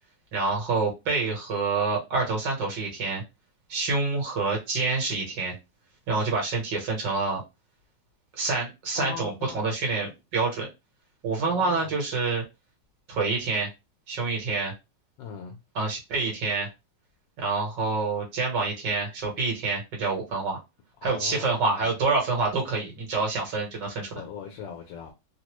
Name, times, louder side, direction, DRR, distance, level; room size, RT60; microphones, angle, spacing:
voice 1, 0.3-3.2 3.7-5.5 6.1-7.4 8.3-10.7 11.2-12.4 13.1-13.7 14.1-14.7 15.8-16.7 17.4-20.6 21.0-24.2, right 3 dB, 75° right, 1.8 m, -27 dB
voice 2, 8.9-9.7 11.5-11.9 15.2-15.6 21.0-21.9 24.2-25.1, left 7 dB, 85° left, 1.3 m, -39 dB
3.7 x 2.1 x 3.0 m
omnidirectional pair, 2.0 m